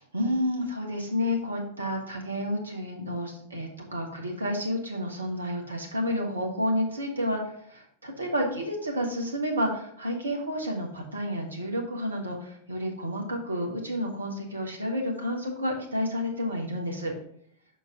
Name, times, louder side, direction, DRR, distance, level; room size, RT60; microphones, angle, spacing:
voice 1, 0.1-17.1, equal, 75° right, 1 dB, 1.3 m, -30 dB
5.8 x 5.4 x 3.7 m, 0.64 s
figure-of-eight pair, 90°, 0 cm